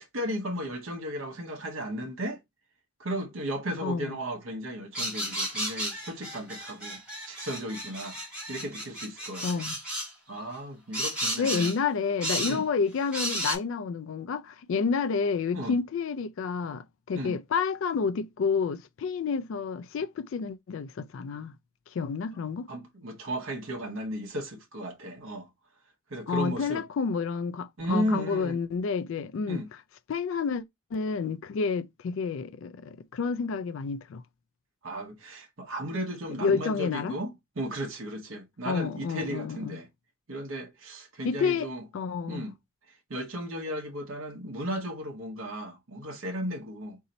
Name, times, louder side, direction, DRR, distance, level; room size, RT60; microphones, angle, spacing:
voice 1, 0.1-2.4 3.0-7.0 7.3-8.2 8.5-9.6 10.3-11.7 12.4-12.6 15.5-15.8 17.1-17.4 22.7-25.5 26.1-26.8 27.8-28.6 29.5-29.7 34.8-39.9 40.3-41.8 42.3-42.5 43.1-47.0, equal, 80° right, 0.9 m, -35 dB
voice 2, 3.8-4.2 9.4-9.8 11.4-21.5 21.9-22.7 26.3-29.6 30.1-30.6 30.9-34.2 36.4-37.2 38.6-39.8 41.2-42.5, left 5 dB, 70° left, 0.4 m, -29 dB
sound 1, 4.9-10.1 10.9-11.8 12.2-12.6 13.1-13.6, right 1 dB, 5° right, 2.4 m, -33 dB
3.9 x 2.7 x 4.1 m
head